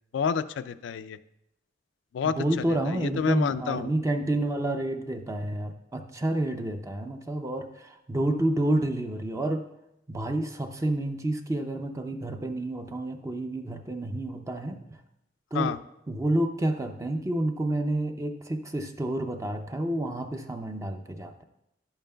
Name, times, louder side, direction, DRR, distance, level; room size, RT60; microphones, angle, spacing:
voice 1, 0.1-1.2 2.1-2.4 2.9-3.9 15.5-15.8, left 6 dB, 80° left, 13 dB, 0.3 m, -28 dB
voice 2, 2.2-9.6 10.1-14.8 15.5-15.7 16.1-21.4, right 1 dB, 15° right, 6 dB, 0.4 m, -29 dB
11.0 x 8.8 x 2.3 m, 0.83 s
head